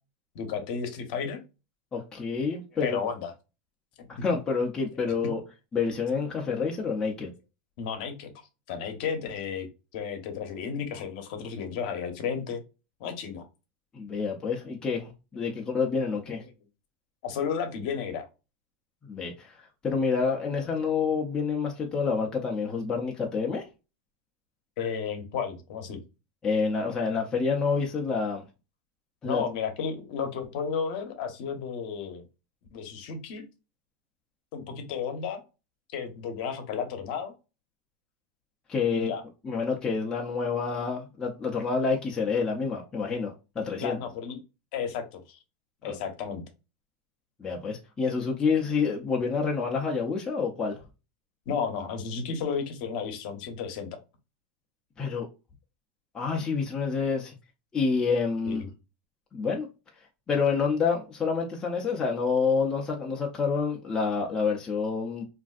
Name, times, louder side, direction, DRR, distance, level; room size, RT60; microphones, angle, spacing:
voice 1, 0.3-1.4 2.8-3.3 5.2-5.3 7.8-8.3 8.7-9.7 9.9-12.6 13.0-13.4 17.2-18.3 24.8-26.0 29.2-32.2 32.7-33.4 34.5-35.4 35.9-37.3 38.9-39.2 43.8-44.4 44.7-45.4 45.8-46.4 51.5-54.0 58.5-58.7, left 6 dB, 55° left, 0.8 m, -33 dB
voice 2, 1.9-3.0 4.1-5.4 5.7-7.3 13.9-16.4 19.0-23.7 26.4-28.4 29.2-29.4 38.7-39.1 39.4-44.0 45.8-45.9 47.4-50.8 55.0-55.3 56.1-57.3 57.7-58.6 59.3-59.7 60.0-65.2, left 5 dB, 15° left, 0.5 m, -28 dB
3.2 x 2.5 x 2.3 m
supercardioid pair, 160°, 5 cm